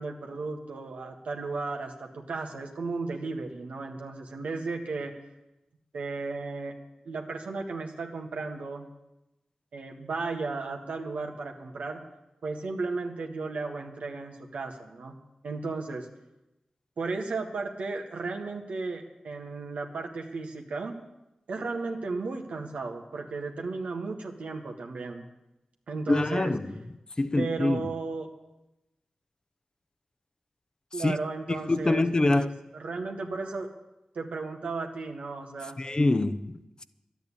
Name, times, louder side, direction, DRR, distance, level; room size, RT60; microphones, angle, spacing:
voice 1, 0.0-5.1 5.9-6.7 7.0-8.9 9.7-12.0 12.4-15.1 15.4-16.1 17.0-21.0 21.5-25.3 25.9-26.5 27.4-28.3 30.9-33.7 34.1-35.8, right 3 dB, 85° right, 1.7 m, -34 dB
voice 2, 26.1-26.7 27.2-27.9 31.0-31.1 31.7-32.5 35.8-36.8, left 2 dB, 35° left, 0.9 m, -25 dB
12.0 x 9.2 x 10.0 m
cardioid pair, 50°, 2 cm